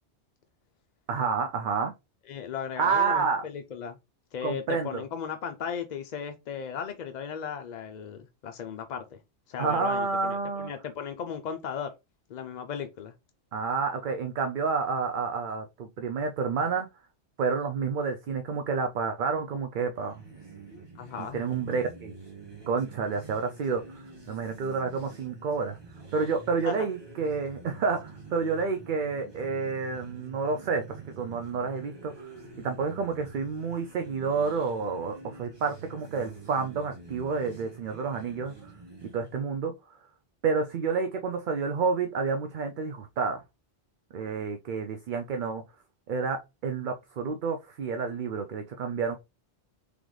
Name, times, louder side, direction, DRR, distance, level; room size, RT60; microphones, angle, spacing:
voice 1, 1.1-1.9 2.8-3.4 4.4-5.0 9.6-10.7 13.5-16.9 17.4-20.1 21.2-22.1 22.7-25.8 26.1-32.3 32.6-38.7 39.0-39.7 40.4-43.4 44.1-45.6 46.1-49.1, right 5 dB, 55° right, 0.6 m, -29 dB
voice 2, 2.3-4.0 4.3-9.2 9.5-11.9 12.3-13.1 21.0-21.4 26.6-26.7, left 7 dB, 55° left, 0.5 m, -36 dB
sound 1, 19.9-39.4, right 4 dB, 25° right, 1.2 m, -47 dB
3.8 x 3.4 x 3.1 m
omnidirectional pair, 1.2 m